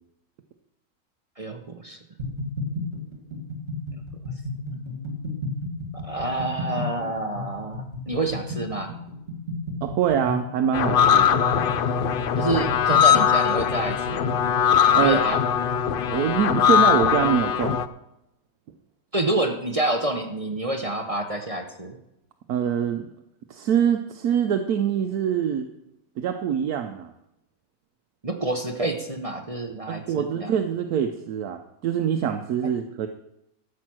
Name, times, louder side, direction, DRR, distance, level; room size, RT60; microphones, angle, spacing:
voice 1, 1.4-2.0 6.0-8.9 12.4-14.4 14.9-15.4 19.1-22.0 28.2-30.5, right 2 dB, 30° right, 4 dB, 0.8 m, -28 dB
sound 1, 2.2-14.5, left 2 dB, 45° right, 2.8 m, -33 dB
voice 2, 9.8-11.5 14.9-15.2 16.1-17.8 22.5-23.1 23.5-25.7 26.2-27.1 29.9-33.1, right 8 dB, 75° right, 5 dB, 1.2 m, -24 dB
sound 2, 10.7-17.9, left 8 dB, 75° left, 0.5 m, -21 dB
13.0 x 7.6 x 6.2 m, 0.84 s
omnidirectional pair, 1.6 m